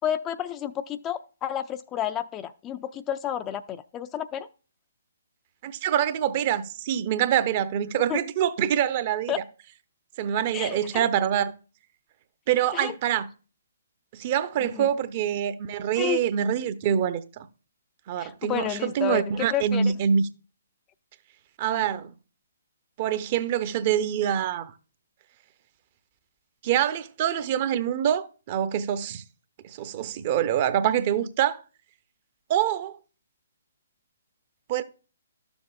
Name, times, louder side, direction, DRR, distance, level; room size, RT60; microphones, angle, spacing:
voice 1, 0.0-4.5 8.1-8.2 9.3-9.4 10.5-11.0 12.7-12.9 14.6-14.9 16.0-16.2 18.2-19.9, left 10 dB, 20° left, 0.4 m, -31 dB
voice 2, 5.6-9.4 10.2-11.5 12.5-13.3 14.1-17.5 18.1-20.2 21.6-22.1 23.0-24.7 26.6-29.2 29.6-31.6 32.5-33.0 34.7-34.8, right 9 dB, 35° right, 0.7 m, -25 dB
12.5 x 7.1 x 2.4 m
figure-of-eight pair, 130°, 0 cm